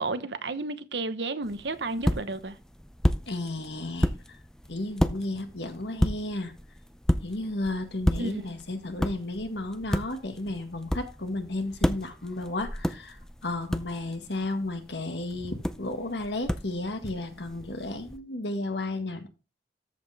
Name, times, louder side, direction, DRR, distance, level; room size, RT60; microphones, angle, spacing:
voice 1, 0.0-2.6 8.2-8.4, right 3 dB, 80° right, 1.0 m, -32 dB
sound 1, 1.4-18.2, equal, 5° left, 0.5 m, -32 dB
voice 2, 3.3-4.2 4.7-6.5 7.2-13.2 13.4-19.3, left 2 dB, 80° left, 1.8 m, -33 dB
13.5 x 5.3 x 3.5 m
head